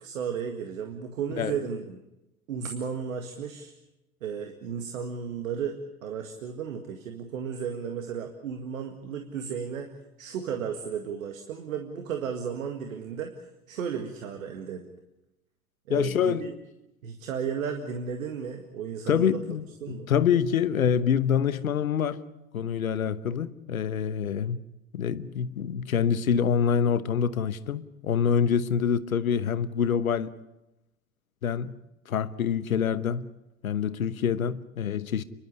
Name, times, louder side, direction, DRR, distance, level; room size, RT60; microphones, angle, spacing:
voice 1, 0.0-2.0 2.5-3.7 4.2-9.9 10.2-14.8 15.9-16.5 17.0-19.4 19.8-20.1, right 7 dB, 70° right, 2.0 m, -34 dB
voice 2, 15.9-16.5 19.1-22.2 22.5-24.6 24.9-30.3 31.4-31.8 32.1-33.3 33.6-35.2, left 7 dB, 75° left, 1.1 m, -26 dB
30.0 x 12.0 x 10.0 m
figure-of-eight pair, 75°, 42 cm